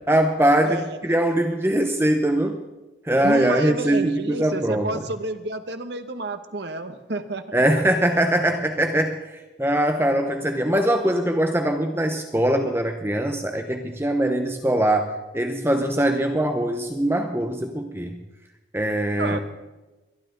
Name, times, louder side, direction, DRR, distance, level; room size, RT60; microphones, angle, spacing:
voice 1, 0.1-2.6 3.1-4.9 7.5-18.2 18.7-19.4, right 1 dB, 15° right, 5 dB, 0.9 m, -22 dB
voice 2, 0.6-1.2 3.1-8.2 19.2-19.4, right 2 dB, 65° right, 9 dB, 1.1 m, -31 dB
22.0 x 11.5 x 3.9 m, 1.1 s
head